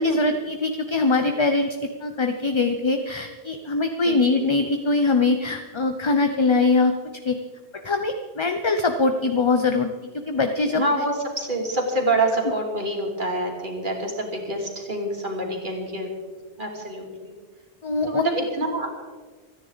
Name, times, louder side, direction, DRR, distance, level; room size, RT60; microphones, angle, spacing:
voice 1, 0.0-6.9 7.2-7.4 7.8-10.8 17.8-18.2, left 3 dB, 30° left, 6 dB, 0.7 m, -22 dB
voice 2, 4.0-4.4 10.7-16.1 16.6-17.3 18.1-18.9, right 1 dB, 50° right, 0 dB, 3.0 m, -26 dB
28.0 x 10.0 x 4.0 m, 1.5 s
omnidirectional pair, 1.1 m